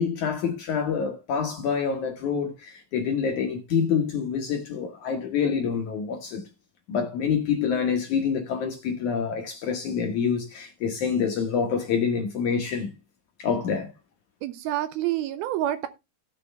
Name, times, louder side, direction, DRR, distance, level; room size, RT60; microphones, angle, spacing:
voice 1, 0.0-6.4 6.9-12.9 13.4-13.9, left 6 dB, 65° left, 2.0 m, -26 dB
voice 2, 14.4-15.9, right 13 dB, 80° right, 2.4 m, -28 dB
16.5 x 6.0 x 3.3 m
omnidirectional pair, 4.7 m